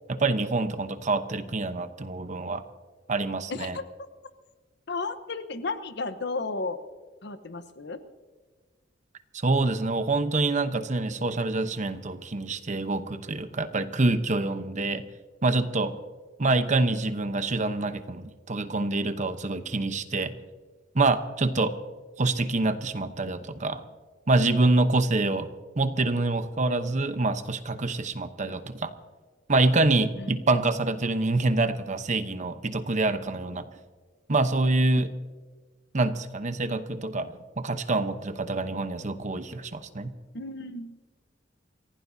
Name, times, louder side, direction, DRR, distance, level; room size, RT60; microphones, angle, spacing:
voice 1, 0.1-2.6 3.1-3.8 9.3-15.0 15.4-16.0 16.4-20.3 20.9-21.7 22.2-23.8 24.3-25.5 25.8-28.9 29.5-33.6 34.3-35.1 35.9-40.1, right 2 dB, 40° right, 10 dB, 0.9 m, -26 dB
voice 2, 4.9-6.8 7.2-8.0 30.2-30.3 40.3-40.9, left 3 dB, 65° left, 10 dB, 1.0 m, -33 dB
28.5 x 16.0 x 2.7 m, 1.4 s
head